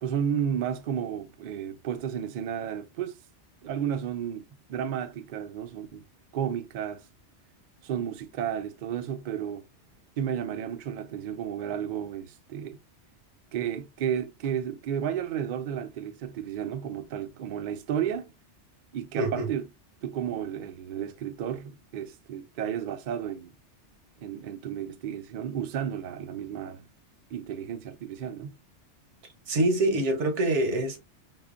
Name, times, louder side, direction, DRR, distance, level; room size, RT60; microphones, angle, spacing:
voice 1, 0.0-3.2 3.6-6.0 6.3-7.0 7.8-9.7 10.2-12.8 13.5-18.3 18.9-19.7 20.0-23.5 24.2-26.9 27.3-28.5, right 9 dB, 60° right, 0.5 m, -32 dB
voice 2, 19.2-19.5 29.5-31.0, right 1 dB, 85° right, 1.1 m, -25 dB
5.4 x 2.0 x 2.3 m
omnidirectional pair, 1.2 m